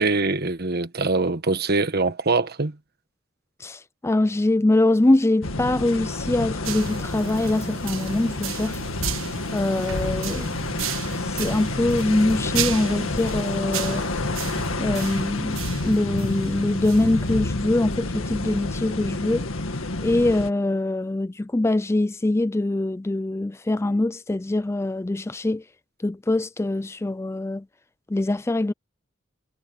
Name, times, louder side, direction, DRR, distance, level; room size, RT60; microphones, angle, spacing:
voice 1, 0.0-2.8, right 3 dB, 50° right, 1.5 m, -23 dB
voice 2, 3.6-8.8 9.5-10.5 11.1-14.1 14.8-19.5 20.0-25.6 26.0-27.7 28.1-28.7, left 2 dB, 15° left, 0.4 m, -23 dB
sound 1, 5.4-20.5, left 2 dB, 90° left, 1.9 m, -29 dB
sound 2, 6.6-17.5, right 7 dB, 85° right, 1.4 m, -34 dB
head